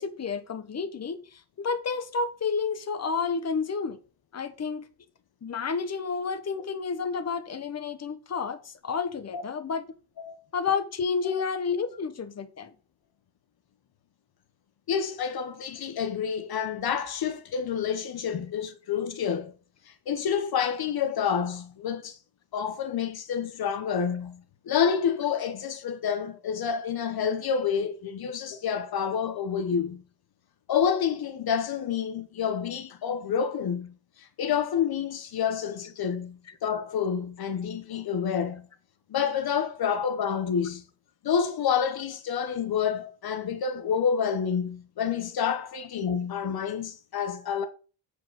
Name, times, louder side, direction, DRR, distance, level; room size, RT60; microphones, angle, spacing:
voice 1, 0.0-4.0 4.3-4.8 5.4-9.8 10.5-12.7 36.5-36.6, left 5 dB, 40° left, 1.2 m, -30 dB
voice 2, 14.9-19.5 19.8-22.2 22.5-30.0 30.7-38.7 39.1-40.8 41.2-47.7, left 7 dB, 65° left, 0.9 m, -28 dB
8.5 x 4.9 x 6.0 m
wide cardioid pair, 125°, 39 cm